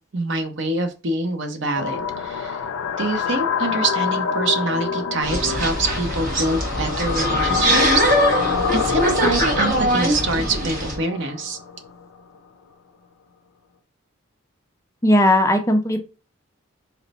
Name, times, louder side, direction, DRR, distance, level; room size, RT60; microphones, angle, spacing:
voice 1, 0.1-2.6 3.0-8.4 8.7-11.6, right 2 dB, 60° right, 7 dB, 0.6 m, -25 dB
sound 1, 1.7-11.9, left 6 dB, 80° left, 0.4 m, -26 dB
sound 2, 5.2-11.0, right 1 dB, 40° right, 1.0 m, -22 dB
voice 2, 15.0-16.0, left 1 dB, 15° left, 5 dB, 0.4 m, -17 dB
4.3 x 2.0 x 4.0 m, 0.33 s
head